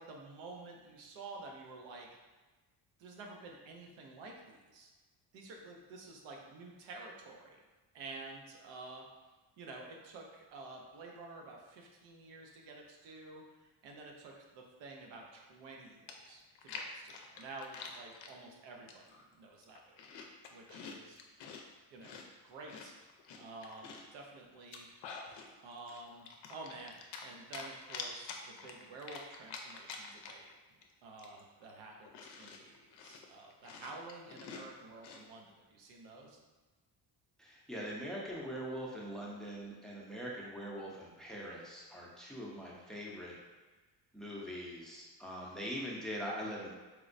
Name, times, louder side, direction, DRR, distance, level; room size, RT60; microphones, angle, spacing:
voice 1, 0.0-2.1 3.0-4.9 5.3-7.6 7.9-9.0 9.6-20.2 20.5-21.2 21.9-22.9 23.3-25.3 25.6-36.4, right 3 dB, 85° right, 0 dB, 0.7 m, -50 dB
Chewing mastication, 15.7-15.8 16.1-18.3 18.9-19.2 19.6-21.6 22.0-24.1 24.6-25.5 25.9-27.3 27.5-30.5 30.8-30.9 31.2-35.2, left 5 dB, 70° left, 0.5 m, -47 dB
voice 2, 37.4-43.3 44.1-46.7, equal, ahead, -4 dB, 0.6 m, -42 dB
4.4 x 2.0 x 2.5 m, 1.2 s
cardioid pair, 100°, 43 cm